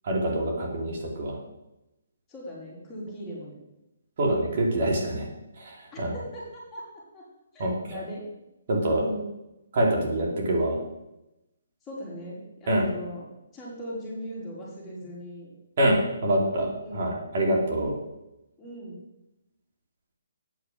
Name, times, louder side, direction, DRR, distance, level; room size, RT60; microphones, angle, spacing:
voice 1, 0.0-1.4 4.2-5.3 5.6-6.1 7.6-8.0 8.7-9.0 9.7-10.8 12.7-12.9 15.8-17.9, right 1 dB, 50° right, 0 dB, 2.7 m, -25 dB
voice 2, 2.3-3.6 5.9-6.8 7.1-7.2 7.5-8.2 8.9-9.3 11.8-13.3 13.5-15.5 16.8-17.3 18.6-19.0, equal, 15° left, -6 dB, 3.8 m, -39 dB
8.7 x 7.0 x 7.2 m, 0.92 s
hypercardioid pair, 160°, 0 cm